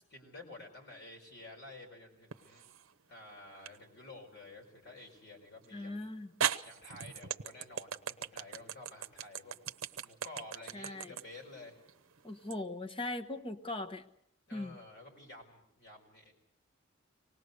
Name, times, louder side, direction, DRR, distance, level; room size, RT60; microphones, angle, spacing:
voice 1, 0.1-2.7 3.1-6.0 6.6-9.6 10.0-11.8 14.5-16.3, left 2 dB, 55° left, 0 dB, 4.4 m, -51 dB
sound 1, 2.3-2.9 3.7-3.8 5.6-5.7 6.4-12.6, right 8 dB, 70° right, 0.8 m, -38 dB
voice 2, 5.7-6.3 10.7-11.1 12.2-14.0 14.5-14.7, left 2 dB, 25° left, 5 dB, 1.2 m, -39 dB
25.0 x 19.5 x 6.6 m, 0.76 s
head